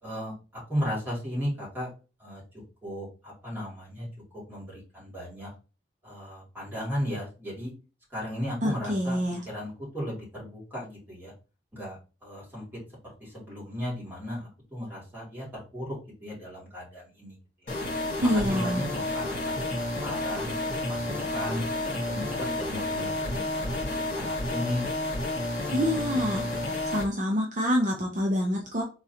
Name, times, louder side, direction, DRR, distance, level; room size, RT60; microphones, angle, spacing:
voice 1, 0.0-1.9 2.2-2.4 2.8-4.1 4.3-5.5 6.0-7.7 8.1-9.2 9.4-11.3 11.7-12.7 13.0-17.7 18.2-20.5 20.9-21.6 22.0-24.8, equal, 10° right, -6 dB, 2.7 m, -36 dB
voice 2, 8.6-9.4 18.2-18.8 25.7-26.5 26.9-28.8, equal, 45° right, -1 dB, 0.8 m, -26 dB
sound 1, 17.7-27.0, left 1 dB, 45° left, 1.7 m, -30 dB
4.8 x 3.8 x 2.9 m, 0.34 s
head